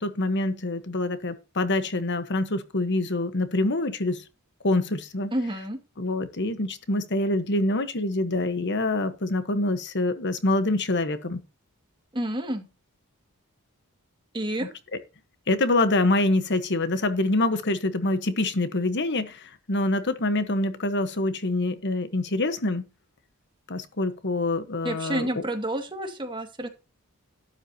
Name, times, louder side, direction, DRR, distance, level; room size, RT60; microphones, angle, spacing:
voice 1, 0.0-4.2 4.6-5.3 6.0-11.4 15.5-22.9 23.7-25.3, left 2 dB, 50° left, 1.3 m, -25 dB
voice 2, 5.3-5.8 12.1-12.7 14.3-14.7 24.8-26.7, right 1 dB, 20° right, 2.2 m, -29 dB
12.5 x 11.0 x 2.9 m
head